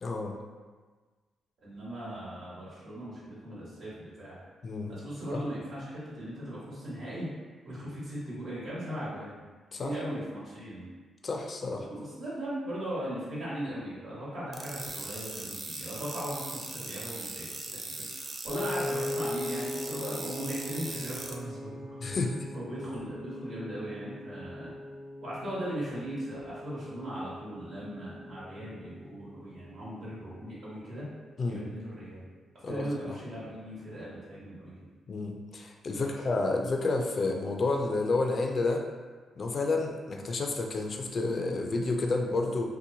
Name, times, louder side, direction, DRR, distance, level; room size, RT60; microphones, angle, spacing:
voice 1, 0.0-0.4 4.6-4.9 5.3-5.4 9.7-10.0 11.2-11.9 22.0-22.5 31.4-31.6 32.6-32.8 35.1-38.9 39.4-42.7, left 3 dB, 50° left, 2 dB, 0.3 m, -30 dB
voice 2, 1.6-4.4 4.9-7.3 7.6-9.4 9.8-10.9 11.8-22.2 22.5-24.7 25.2-31.1 31.4-32.2 32.7-34.7 35.9-36.2 40.2-40.3, equal, 65° right, -9 dB, 1.2 m, -38 dB
sound 1, 14.5-21.3, right 2 dB, 40° right, 0.4 m, -40 dB
Piano, 18.5-30.7, left 1 dB, 85° right, 1.5 m, -41 dB
2.7 x 2.2 x 2.6 m, 1.4 s
cardioid pair, 70°, 0 cm